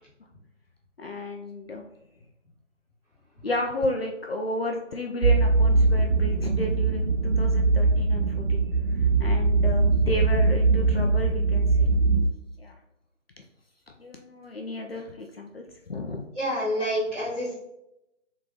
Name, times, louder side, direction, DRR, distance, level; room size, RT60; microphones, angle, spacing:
voice 1, 1.0-1.8 3.4-8.7 8.9-11.9 12.6-12.8 13.4-13.5 14.0-16.2, left 1 dB, 55° left, 2 dB, 0.5 m, -33 dB
sound 1, 5.2-12.3, right 3 dB, 80° right, 0.5 m, -21 dB
voice 2, 16.3-17.5, equal, 10° right, -14 dB, 1.0 m, -27 dB
3.7 x 3.0 x 3.7 m, 0.89 s
figure-of-eight pair, 160°, 38 cm